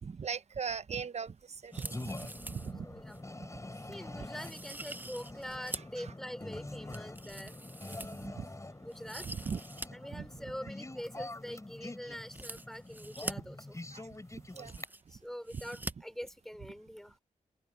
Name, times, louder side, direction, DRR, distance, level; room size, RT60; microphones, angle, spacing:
voice 1, 0.0-1.4 1.6-2.0 2.5-2.9 4.2-4.3 5.7-6.1 8.2-8.5 9.2-9.6 10.1-10.3 13.9-14.0 14.5-14.8 15.5-15.6, right 6 dB, 50° right, 0.9 m, -39 dB
sound 1, 1.6-2.7 3.1-3.2 3.7-3.9 4.3-6.0 6.4-8.5 8.9-9.9 10.2-10.3 12.2-13.3 14.1-14.2 14.4-15.1 15.5-15.9 16.2-16.3, right 1 dB, 15° right, 0.7 m, -44 dB
sound 2, 1.7-14.8, left 2 dB, 20° left, 3.9 m, -45 dB
voice 2, 2.8-3.2 3.9-7.5 7.8-8.5 8.8-9.3 9.9-13.8 15.1-17.2, equal, 5° left, 5.2 m, -44 dB
open air
cardioid pair, 50°, 14 cm